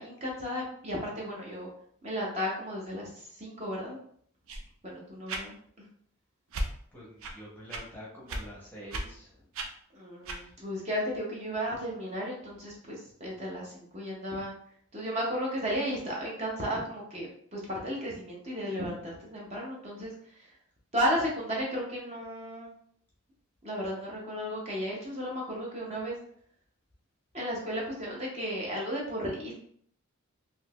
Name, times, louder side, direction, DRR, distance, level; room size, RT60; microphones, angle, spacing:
voice 1, 0.0-1.7 2.0-4.0 4.8-5.9 9.9-14.5 14.9-20.1 20.9-22.7 23.6-26.2 27.3-29.5, equal, 30° right, -3 dB, 0.7 m, -34 dB
sound 1, 4.5-4.7 5.3-5.5 6.5-6.7 7.2-7.4 7.7-7.8 8.3-8.4 8.9-9.1 9.5-9.7 10.2-10.4, right 1 dB, 65° right, 0.5 m, -34 dB
voice 2, 6.6-9.4, equal, 10° left, -5 dB, 0.8 m, -47 dB
3.7 x 2.7 x 2.3 m, 0.62 s
head